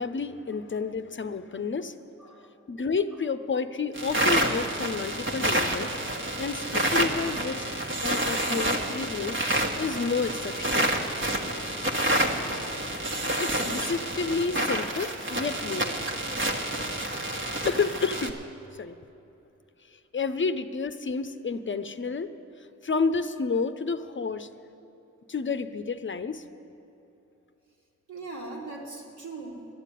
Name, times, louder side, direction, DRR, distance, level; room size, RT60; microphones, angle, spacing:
voice 1, 0.0-2.0 2.7-6.0 6.4-7.7 8.0-9.4 9.8-10.9 13.4-16.0 17.6-18.4 18.8-18.9 20.1-22.3 22.8-24.5 25.3-26.5, left 4 dB, 40° left, 11 dB, 0.6 m, -30 dB
voice 2, 2.2-2.5 10.3-10.4 28.1-29.7, right 3 dB, 75° right, -2 dB, 2.6 m, -41 dB
sound 1, 3.9-18.3, right 1 dB, 40° right, 1.5 m, -28 dB
11.5 x 7.4 x 9.9 m, 2.8 s
cardioid pair, 40°, 30 cm